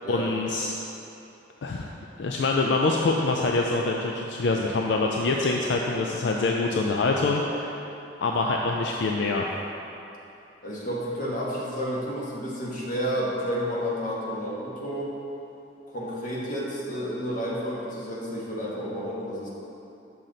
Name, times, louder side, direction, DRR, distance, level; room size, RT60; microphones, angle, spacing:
voice 1, 0.1-0.7 1.6-1.9 2.2-7.7 8.2-9.5, left 3 dB, 65° left, 0 dB, 0.4 m, -25 dB
voice 2, 10.6-15.1 15.9-19.5, equal, 45° left, -5 dB, 1.3 m, -31 dB
6.3 x 5.8 x 3.9 m, 2.8 s
head